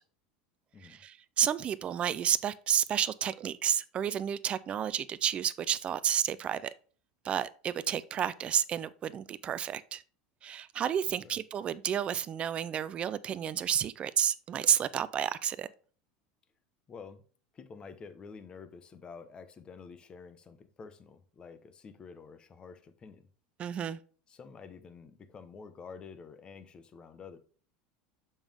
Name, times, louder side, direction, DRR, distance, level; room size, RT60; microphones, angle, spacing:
voice 1, 0.8-6.7 7.2-10.0 10.4-15.7 23.6-24.0, right 9 dB, 30° right, 0.5 m, -31 dB
voice 2, 16.9-17.2 17.5-23.3 24.3-27.4, left 5 dB, 25° left, 0.8 m, -49 dB
7.0 x 5.4 x 3.5 m
supercardioid pair, 135°, 4 cm